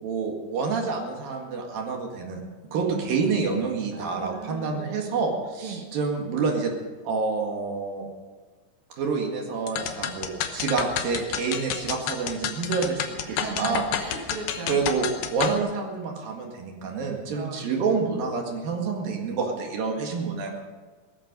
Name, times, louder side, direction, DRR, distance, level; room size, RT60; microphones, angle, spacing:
voice 1, 0.0-2.4 2.7-6.7 7.0-8.1 8.9-13.8 14.7-20.6, right 4 dB, 65° right, 1 dB, 3.5 m, -28 dB
voice 2, 2.7-3.3 3.9-5.0 5.6-5.8 13.3-14.8 17.3-17.7, right 5 dB, 40° right, 1 dB, 2.5 m, -37 dB
sound 1, 9.7-15.6, left 9 dB, 75° left, 2.9 m, -30 dB
18.5 x 14.0 x 5.3 m, 1.4 s
omnidirectional pair, 4.6 m